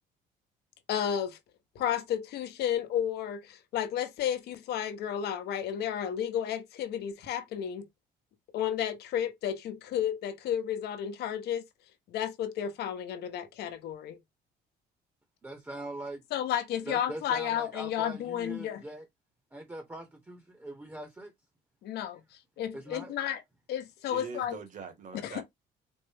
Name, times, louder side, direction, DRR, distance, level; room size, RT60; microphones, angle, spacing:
voice 1, 0.9-1.4 1.7-7.8 8.5-11.6 12.1-14.2 16.3-18.8 21.8-22.2 22.6-23.4 23.7-24.6 25.2-25.4, left 9 dB, 75° left, 0.9 m, -32 dB
voice 2, 15.4-16.2 16.8-19.0 19.5-21.3 22.7-23.1, right 1 dB, 10° right, 0.9 m, -42 dB
voice 3, 24.1-25.4, right 5 dB, 50° right, 1.4 m, -42 dB
4.4 x 2.1 x 3.4 m
cardioid pair, 110°, 17 cm